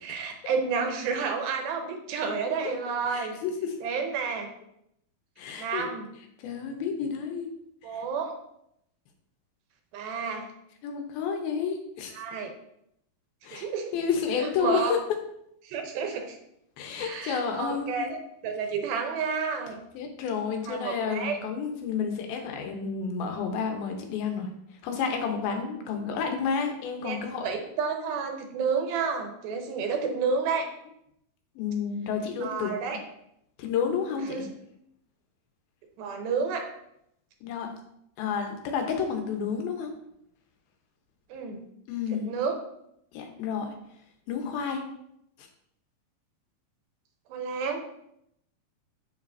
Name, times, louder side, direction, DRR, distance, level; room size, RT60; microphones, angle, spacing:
voice 1, 0.0-3.4 3.8-4.5 5.6-6.1 7.8-8.4 9.9-10.5 12.1-12.5 13.5-13.9 14.4-15.0 15.6-16.4 17.0-18.2 18.4-19.8 20.7-21.4 27.0-30.7 32.4-33.0 34.2-34.5 36.0-36.7 41.3-41.7 42.3-42.6 47.3-47.8, right 5 dB, 85° right, 4 dB, 2.7 m, -30 dB
voice 2, 3.1-3.8 5.4-6.0 6.4-7.5 7.9-8.0 10.8-12.1 13.4-13.7 13.9-15.0 16.8-18.1 19.9-24.5 24.8-27.5 31.6-32.7 33.6-34.4 37.4-37.7 38.2-39.9 41.9-42.3 43.1-43.7 44.3-44.8, left 6 dB, 80° left, 4 dB, 2.7 m, -30 dB
7.3 x 7.1 x 2.6 m, 0.76 s
omnidirectional pair, 4.3 m